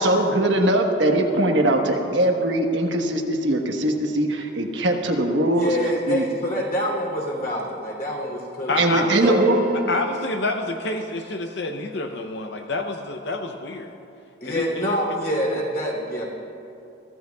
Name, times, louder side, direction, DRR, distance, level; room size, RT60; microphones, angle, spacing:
voice 1, 0.0-5.7 6.1-6.2 8.8-9.6, right 1 dB, 70° right, 2 dB, 1.3 m, -21 dB
voice 2, 5.5-9.5 14.4-16.2, equal, 45° left, -2 dB, 3.0 m, -27 dB
voice 3, 8.7-9.4 9.9-13.9 14.4-14.9, left 2 dB, 60° left, 4 dB, 0.6 m, -28 dB
sound 1, 9.2-11.5, right 1 dB, 50° right, 0.8 m, -30 dB
23.0 x 15.0 x 2.3 m, 2.7 s
head